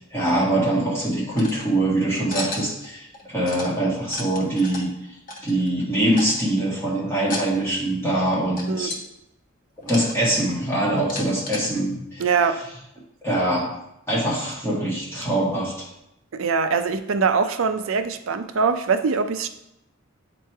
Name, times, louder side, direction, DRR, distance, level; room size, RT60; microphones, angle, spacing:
voice 1, 0.1-4.9 5.4-9.0 9.8-12.2 13.2-13.7 14.1-15.9, right 1 dB, 10° left, -6 dB, 1.7 m, -23 dB
sound 1, 1.3-1.6 2.3-2.9 3.1-3.7 4.0-4.9 5.3-5.8 6.1-6.5 7.2-7.5 7.8-7.9 8.6-9.0 9.8-10.5 10.9-11.7, left 2 dB, 40° left, 1.1 m, -33 dB
voice 2, 12.2-12.6 16.3-19.5, right 5 dB, 65° right, 9 dB, 0.5 m, -22 dB
8.2 x 3.1 x 4.5 m, 0.82 s
head